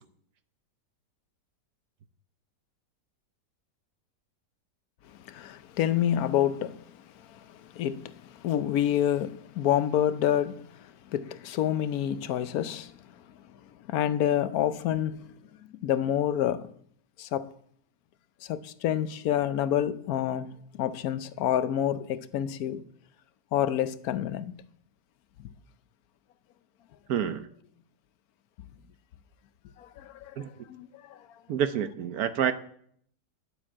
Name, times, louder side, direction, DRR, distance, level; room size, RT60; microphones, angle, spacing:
voice 1, 5.2-6.9 7.2-12.9 13.9-15.2 15.8-16.7 17.2-17.5 18.4-22.8 23.5-24.6 29.8-31.4, left 10 dB, 65° left, 1.0 m, -28 dB
voice 2, 27.1-27.5 30.4-30.7 31.5-32.5, right 9 dB, 65° right, 1.1 m, -28 dB
10.5 x 9.0 x 7.3 m
omnidirectional pair, 1.9 m